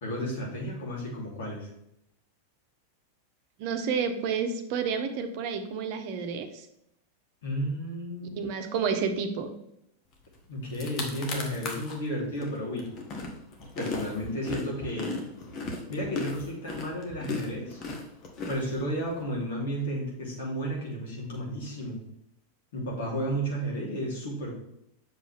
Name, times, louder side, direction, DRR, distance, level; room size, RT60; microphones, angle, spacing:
voice 1, 0.0-1.7 7.4-8.5 10.5-12.9 13.7-15.1 15.9-17.8 18.5-22.0 22.7-24.5, equal, 55° left, -3 dB, 3.2 m, -33 dB
voice 2, 3.6-6.7 8.3-9.5, right 6 dB, 45° right, 7 dB, 1.0 m, -30 dB
sound 1, 10.3-10.4 10.7-12.0 12.4-19.2, left 3 dB, 35° left, 1.5 m, -36 dB
7.7 x 6.0 x 3.5 m, 0.78 s
figure-of-eight pair, 90°, 0 cm